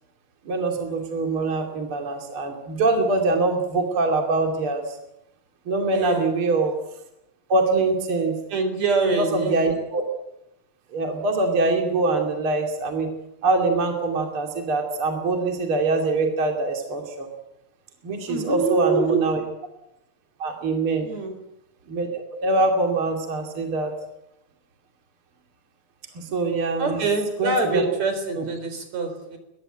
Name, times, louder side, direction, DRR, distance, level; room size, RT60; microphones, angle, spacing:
voice 1, 0.4-5.0 5.7-6.8 7.5-8.4 9.2-10.0 10.9-13.1 13.4-17.3 18.0-19.4 20.4-21.1 21.9-23.9 26.1-27.1 27.4-27.8 28.4-28.5, right 3 dB, 45° right, 3 dB, 3.3 m, -23 dB
voice 2, 5.9-6.3 8.5-9.6 18.3-19.3 21.0-21.4 26.8-29.4, right 3 dB, 65° right, 7 dB, 5.2 m, -25 dB
22.5 x 20.0 x 9.1 m, 0.86 s
omnidirectional pair, 3.4 m